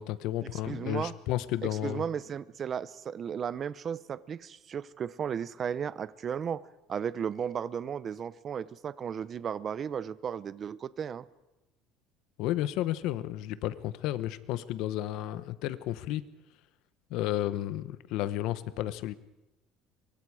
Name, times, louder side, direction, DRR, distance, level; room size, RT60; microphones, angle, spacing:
voice 1, 0.0-2.0 12.4-16.2 17.1-19.1, left 14 dB, 65° left, 14 dB, 0.9 m, -32 dB
voice 2, 0.5-1.1 1.6-11.3, right 7 dB, 35° right, 17 dB, 0.7 m, -35 dB
25.5 x 23.5 x 4.9 m, 1.0 s
cardioid pair, 140°, 0 cm